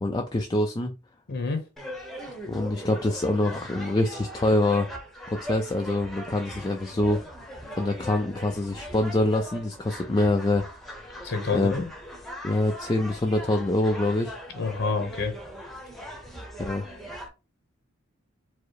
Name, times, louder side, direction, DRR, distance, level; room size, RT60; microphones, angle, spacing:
voice 1, 0.0-0.9 2.4-4.9 5.3-7.2 7.8-10.6 11.5-11.7 12.4-14.4 16.6-16.9, left 2 dB, 20° left, 0.4 m, -25 dB
voice 2, 1.3-1.6 11.2-11.9 14.5-15.3, left 4 dB, 55° left, 0.8 m, -28 dB
sound 1, 1.8-17.3, equal, ahead, 0.8 m, -40 dB
4.6 x 2.0 x 4.6 m
head